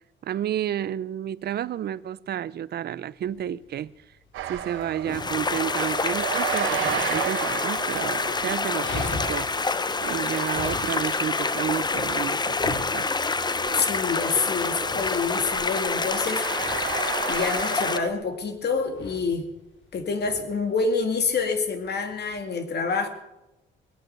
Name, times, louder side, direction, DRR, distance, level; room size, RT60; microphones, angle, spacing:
voice 1, 0.2-3.9 4.5-9.6 10.1-13.1, right 10 dB, 55° right, 0.6 m, -31 dB
Dog, 3.2-22.4, left 3 dB, 70° left, 4.2 m, -41 dB
sound 1, 4.3-18.1, right 10 dB, 80° right, 1.3 m, -34 dB
sound 2, 5.1-18.0, left 4 dB, 20° left, 0.7 m, -27 dB
voice 2, 13.7-16.5 17.3-19.5 19.9-23.1, left 4 dB, 55° left, 2.1 m, -27 dB
20.0 x 8.7 x 6.6 m
cardioid pair, 90°, 20 cm